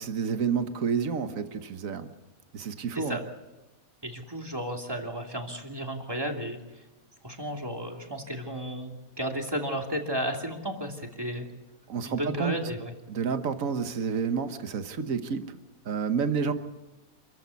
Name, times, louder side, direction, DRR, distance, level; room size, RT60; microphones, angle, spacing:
voice 1, 0.0-2.1 2.5-3.2 11.9-12.6 13.1-15.6 15.8-16.5, right 6 dB, 70° right, 8 dB, 1.6 m, -29 dB
voice 2, 4.0-6.8 7.2-11.5 12.0-12.9, equal, 15° right, 2 dB, 2.9 m, -33 dB
27.5 x 14.5 x 8.4 m, 1.1 s
omnidirectional pair, 1.5 m